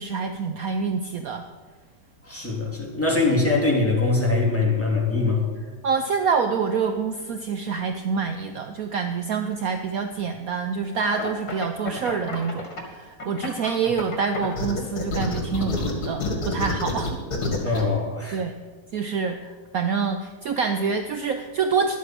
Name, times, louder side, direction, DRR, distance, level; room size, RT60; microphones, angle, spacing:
voice 1, 0.0-1.4 5.8-17.2 17.6-17.8 18.3-18.5 18.9-22.0, right 5 dB, 65° right, 6 dB, 1.0 m, -26 dB
voice 2, 2.2-5.4 17.6-18.4, left 3 dB, 5° left, -3 dB, 2.6 m, -22 dB
sound 1, 11.0-12.8 13.2-17.8, left 3 dB, 65° left, 2.5 m, -28 dB
11.5 x 8.4 x 7.6 m, 1.4 s
omnidirectional pair, 1.8 m